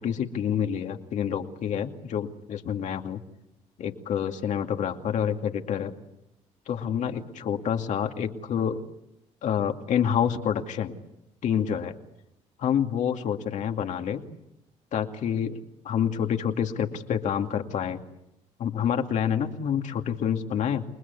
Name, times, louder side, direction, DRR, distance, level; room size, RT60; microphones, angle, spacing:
voice 1, 0.0-3.2 3.8-5.9 6.7-8.8 9.4-10.9 11.4-11.9 12.6-14.2 14.9-15.6 15.8-18.0 18.6-20.8, left 8 dB, 65° left, 5 dB, 2.5 m, -27 dB
29.0 x 20.5 x 8.3 m, 0.85 s
supercardioid pair, 80°, 13 cm